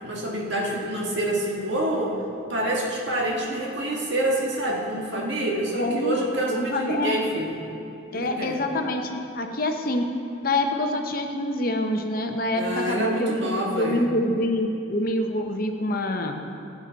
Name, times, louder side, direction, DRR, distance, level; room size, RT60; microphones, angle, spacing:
voice 1, 0.0-2.2 2.5-7.6 8.1-8.5 12.5-14.1, right 1 dB, 60° right, -2 dB, 1.8 m, -27 dB
voice 2, 5.7-6.2 6.5-7.2 8.1-10.1 10.4-13.3 13.8-16.4, left 1 dB, 45° left, 4 dB, 0.8 m, -26 dB
16.0 x 9.0 x 4.0 m, 2.7 s
head